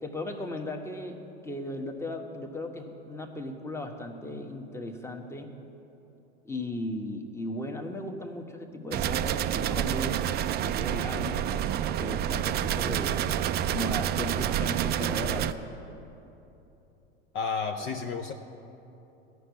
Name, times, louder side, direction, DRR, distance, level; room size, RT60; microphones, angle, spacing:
voice 1, 0.0-5.5 6.4-10.2 10.6-13.2 13.7-15.6, left 1 dB, 10° left, 4 dB, 1.2 m, -36 dB
sound 1, 8.9-15.5, right 10 dB, 30° right, 0.4 m, -28 dB
voice 2, 17.3-18.3, left 5 dB, 40° left, 5 dB, 0.7 m, -31 dB
14.5 x 6.0 x 9.4 m, 3.0 s
hypercardioid pair, 90°, 31 cm